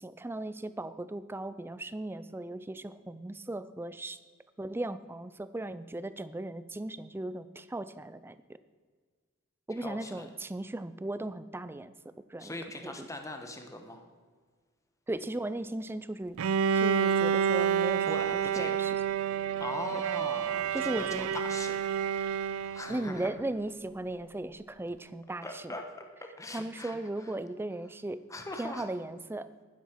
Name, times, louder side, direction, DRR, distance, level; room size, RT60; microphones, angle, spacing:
voice 1, 0.0-4.2 4.6-8.6 9.7-11.9 12.3-12.5 12.8-13.1 15.1-16.4 16.8-19.0 19.9-20.0 20.7-21.3 22.9-25.7 26.5-28.2 28.6-29.5, right 1 dB, 10° right, 13 dB, 0.4 m, -37 dB
voice 2, 9.8-10.3 12.4-14.0 18.0-18.8 19.6-21.8 22.6-23.3 25.4-25.9 26.2-27.3 28.3-28.9, left 2 dB, 15° left, 5 dB, 1.2 m, -41 dB
Bowed string instrument, 16.4-23.1, right 7 dB, 75° right, 0.4 m, -29 dB
11.5 x 10.5 x 4.6 m, 1.5 s
head